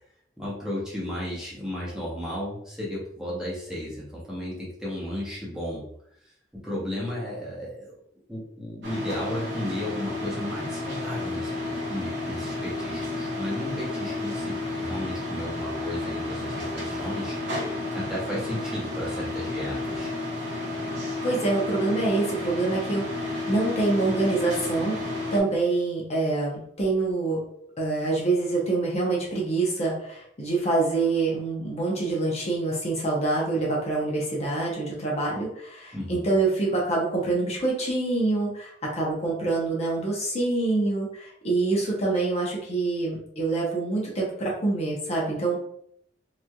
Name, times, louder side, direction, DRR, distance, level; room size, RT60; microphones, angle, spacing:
voice 1, 0.4-5.8 6.5-8.0 8.3-17.7 17.9-20.1 35.9-36.3, left 1 dB, 5° right, -7 dB, 0.9 m, -34 dB
sound 1, 8.8-25.4, left 2 dB, 75° right, 0.8 m, -32 dB
voice 2, 21.2-27.4 27.8-45.6, right 3 dB, 40° left, -4 dB, 0.8 m, -26 dB
3.1 x 2.6 x 2.3 m, 0.70 s
head